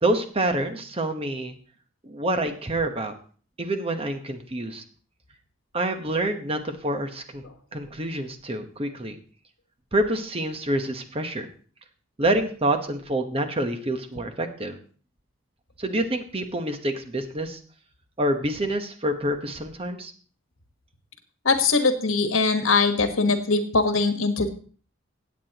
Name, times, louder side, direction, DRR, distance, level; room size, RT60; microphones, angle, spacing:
voice 1, 0.0-1.5 2.0-3.1 3.6-4.8 5.7-7.4 7.7-9.1 9.9-11.5 12.2-14.8 15.8-17.6 18.2-20.1, right 1 dB, 30° right, 6 dB, 1.1 m, -27 dB
voice 2, 21.4-24.5, left 4 dB, 85° left, 7 dB, 1.4 m, -21 dB
17.0 x 8.5 x 2.9 m, 0.41 s
head